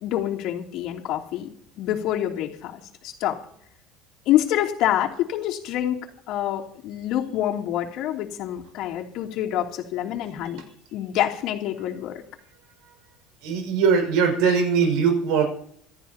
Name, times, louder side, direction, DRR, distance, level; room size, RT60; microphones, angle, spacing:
voice 1, 0.0-1.5 1.8-3.4 4.3-6.0 6.3-10.6 10.9-12.2, left 12 dB, 60° left, 0 dB, 2.9 m, -26 dB
voice 2, 13.4-15.5, right 6 dB, 75° right, 3 dB, 5.8 m, -20 dB
26.5 x 13.0 x 2.9 m, 0.65 s
cardioid pair, 155°, 0 cm